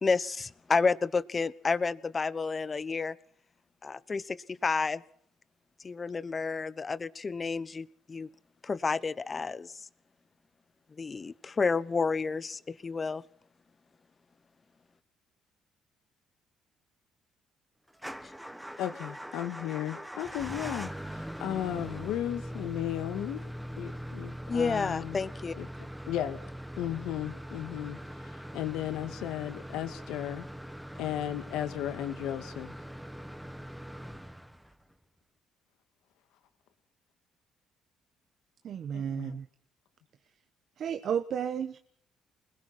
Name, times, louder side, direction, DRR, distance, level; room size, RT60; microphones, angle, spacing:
voice 1, 0.0-3.2 3.8-5.0 5.8-8.3 8.6-9.9 11.0-13.2 18.2-18.3 24.5-25.5, left 4 dB, 30° left, 17 dB, 1.0 m, -30 dB
Motor vehicle (road) / Engine starting / Idling, 17.9-34.9, equal, 5° right, 1.3 m, -42 dB
voice 2, 18.8-23.5 23.8-25.2 25.6-26.4 26.8-30.5 31.0-32.7 38.9-39.4, left 12 dB, 85° left, 10 dB, 1.9 m, -35 dB
voice 3, 38.6-39.5 40.8-41.8, right 8 dB, 60° right, 10 dB, 1.1 m, -32 dB
29.0 x 21.0 x 4.3 m, 0.63 s
cardioid pair, 90°, 0 cm